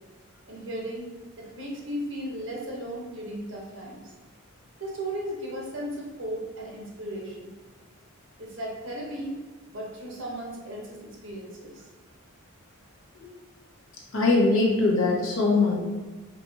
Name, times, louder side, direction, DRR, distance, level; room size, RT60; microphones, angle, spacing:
voice 1, 0.5-1.1 1.4-4.1 4.8-7.5 8.4-9.4 9.7-11.8, right 1 dB, 55° right, -3 dB, 1.0 m, -36 dB
voice 2, 14.1-15.8, left 3 dB, 65° left, -2 dB, 0.9 m, -21 dB
4.9 x 3.0 x 2.7 m, 1.3 s
head